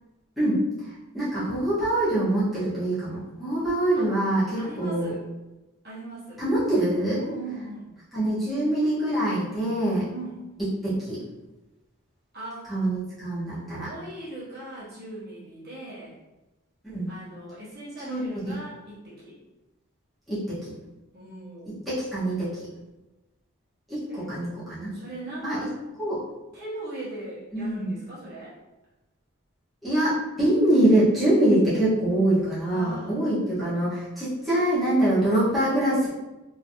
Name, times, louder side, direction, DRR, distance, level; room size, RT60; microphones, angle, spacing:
voice 1, 0.4-0.7 1.1-5.1 6.4-7.2 8.1-10.1 10.6-11.2 12.7-13.9 16.8-17.1 18.0-18.6 20.3-20.7 21.7-22.6 23.9-24.9 25.4-25.7 26.0-26.2 27.5-27.9 29.8-36.1, right 1 dB, ahead, -14 dB, 1.2 m, -24 dB
voice 2, 4.6-5.2 5.8-6.4 7.2-7.9 10.1-10.4 12.3-12.7 13.9-16.1 17.1-19.4 21.1-21.8 24.1-24.3 24.9-25.7 26.5-28.6 32.7-33.2, right 2 dB, 50° right, -9 dB, 1.1 m, -39 dB
3.0 x 3.0 x 2.7 m, 1.1 s
head